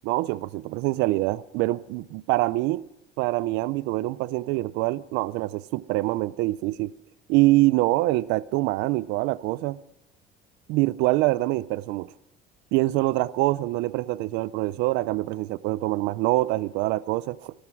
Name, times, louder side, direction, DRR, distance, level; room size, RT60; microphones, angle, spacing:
voice 1, 0.0-2.9 3.2-6.9 7.3-9.8 10.7-12.1 12.7-17.5, right 19 dB, 80° right, 0.5 m, -25 dB
17.5 x 13.0 x 6.2 m
cardioid pair, 165°, 18 cm